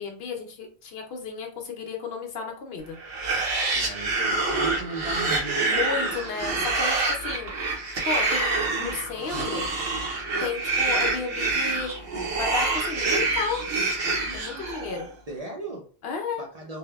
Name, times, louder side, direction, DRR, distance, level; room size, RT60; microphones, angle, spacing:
voice 1, 0.0-3.0 5.7-7.5 8.0-9.8 10.4-11.9 12.4-13.6 14.3-15.1 16.0-16.4, left 5 dB, 70° left, 2 dB, 0.9 m, -33 dB
sound 1, 3.0-15.0, right 3 dB, 70° right, 0.9 m, -26 dB
voice 2, 3.7-5.7 15.3-15.9 16.4-16.8, right 3 dB, 50° right, 0 dB, 0.5 m, -36 dB
3.2 x 2.1 x 2.3 m, 0.41 s
omnidirectional pair, 1.0 m